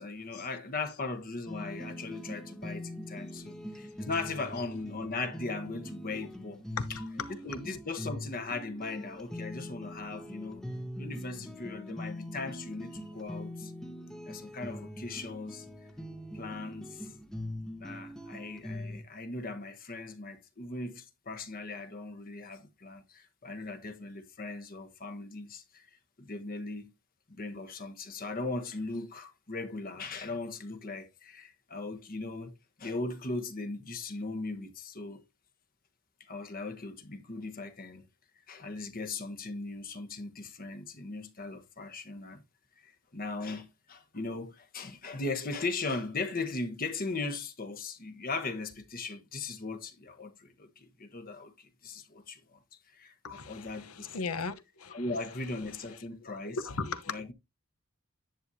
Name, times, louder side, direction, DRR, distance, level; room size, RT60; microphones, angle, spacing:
voice 1, 0.0-6.6 6.9-7.0 7.4-10.6 11.0-13.7 14.2-15.7 16.3-17.1 17.8-26.9 27.3-35.2 36.2-38.0 38.5-42.4 42.8-52.6 52.9-54.3 54.9-56.6 57.1-57.3, left 3 dB, 40° left, 1.1 m, -38 dB
sound 1, 1.5-19.0, left 1 dB, ahead, 0.8 m, -42 dB
voice 2, 6.8-7.3 53.2-55.0 56.2-57.2, left 4 dB, 90° left, 1.0 m, -37 dB
10.5 x 6.9 x 2.7 m
head